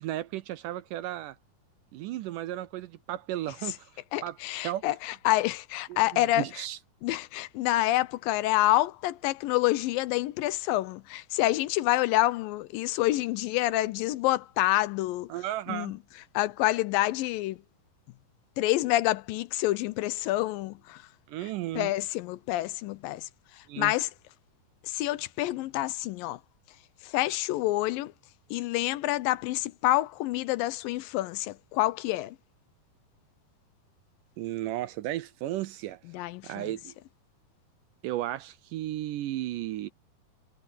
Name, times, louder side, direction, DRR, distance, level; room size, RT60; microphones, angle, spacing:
voice 1, 0.0-1.4 1.9-3.9 4.2-4.4 4.6-4.8 5.9-6.8 15.3-16.0 21.3-21.9 23.7-23.9 34.4-36.0 36.4-36.9 38.0-39.9, right 14 dB, 80° right, 2.0 m, -34 dB
voice 2, 4.1-6.5 7.0-15.3 15.7-16.0 16.3-17.6 18.6-21.0 21.8-23.3 23.6-24.1 24.8-26.4 27.0-28.1 28.5-32.4 36.1-36.7, left 16 dB, 80° left, 2.3 m, -27 dB
omnidirectional pair, 4.2 m